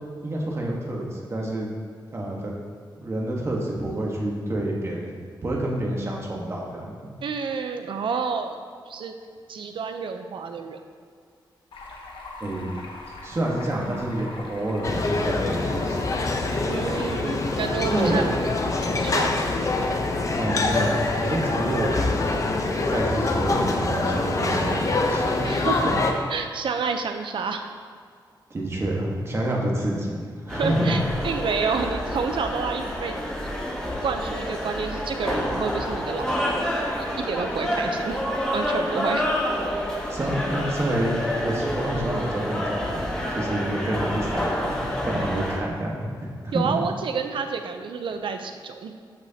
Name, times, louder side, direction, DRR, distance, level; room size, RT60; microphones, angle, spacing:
voice 1, 0.2-1.7 2.1-2.5 3.0-5.1 5.4-7.1 12.4-12.7 13.2-16.1 17.8-18.3 20.4-22.5 22.9-25.5 25.8-26.0 28.5-30.9 40.1-46.6, right 1 dB, 30° right, -2 dB, 1.4 m, -28 dB
voice 2, 7.2-8.6 8.9-9.2 9.5-10.8 16.7-18.2 19.0-19.3 25.4-25.9 26.3-27.6 30.6-33.2 34.0-38.2 38.5-39.3 45.3-45.4 46.5-49.0, right 5 dB, 80° right, 6 dB, 0.7 m, -29 dB
Stream, 11.7-25.3, left 2 dB, 80° left, 1.1 m, -41 dB
sound 1, 14.8-26.1, left 3 dB, 40° left, 0.8 m, -25 dB
sound 2, 30.5-45.6, equal, 10° left, 1.3 m, -28 dB
13.5 x 6.1 x 2.9 m, 2.1 s
wide cardioid pair, 175°, 8 cm